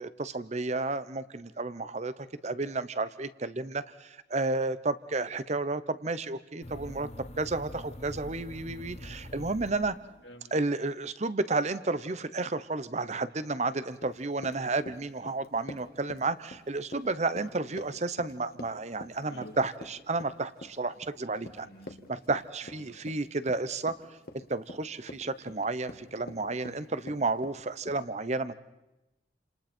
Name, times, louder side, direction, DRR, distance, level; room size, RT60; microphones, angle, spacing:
voice 1, 0.0-7.1 7.4-10.0 10.5-21.7 22.1-24.0 24.3-28.5, right 3 dB, 40° right, 14 dB, 0.9 m, -32 dB
sound 1, 6.6-10.4, left 1 dB, 35° left, 1.4 m, -44 dB
Run, 13.9-28.0, left 1 dB, 55° left, 1.8 m, -47 dB
voice 2, 21.4-22.0 22.8-23.0 27.1-27.2, left 1 dB, 90° left, 0 dB, 4.1 m, -50 dB
29.5 x 27.5 x 4.4 m, 0.98 s
head